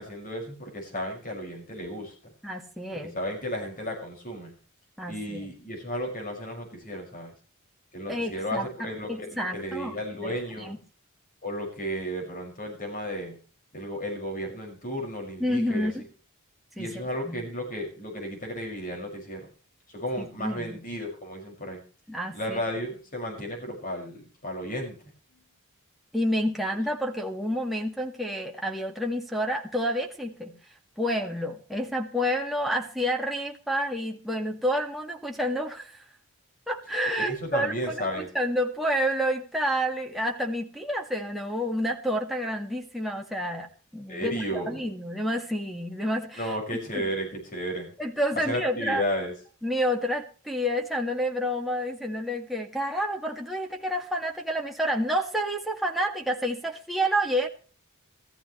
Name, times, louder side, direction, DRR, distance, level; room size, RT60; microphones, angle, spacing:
voice 1, 0.0-2.1 2.9-4.5 5.1-7.3 7.9-10.8 11.4-13.4 13.7-15.9 16.8-19.5 19.9-21.8 22.3-25.0 25.3-25.4 37.2-38.3 44.1-44.8 46.4-47.9 48.4-49.3, equal, 40° left, 2 dB, 5.9 m, -33 dB
voice 2, 2.4-3.1 5.0-5.5 8.1-10.8 15.4-16.1 16.8-16.9 17.2-17.4 20.2-20.8 22.1-22.6 26.1-30.5 31.0-36.0 36.7-38.0 38.3-46.6 48.0-49.0 49.6-57.5, equal, ahead, 0 dB, 2.1 m, -29 dB
18.5 x 14.5 x 3.2 m, 0.37 s
head